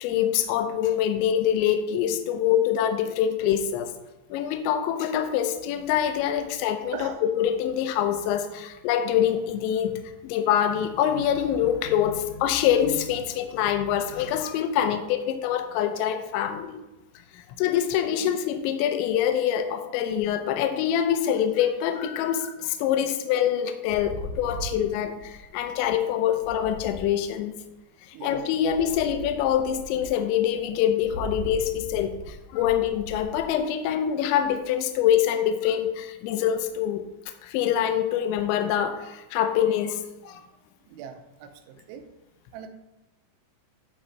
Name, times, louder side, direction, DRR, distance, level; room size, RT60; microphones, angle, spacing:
voice 1, 0.0-3.9 4.3-16.8 17.3-27.5 28.2-40.4, left 9 dB, 80° left, 8 dB, 2.9 m, -25 dB
sound 1, 23.9-27.9 28.6-34.9, equal, 50° left, 1.7 m, -40 dB
voice 2, 28.1-28.5 40.9-42.1 42.5-42.7, right 8 dB, 85° right, 7 dB, 3.1 m, -40 dB
10.5 x 3.8 x 4.4 m, 0.94 s
omnidirectional pair, 5.3 m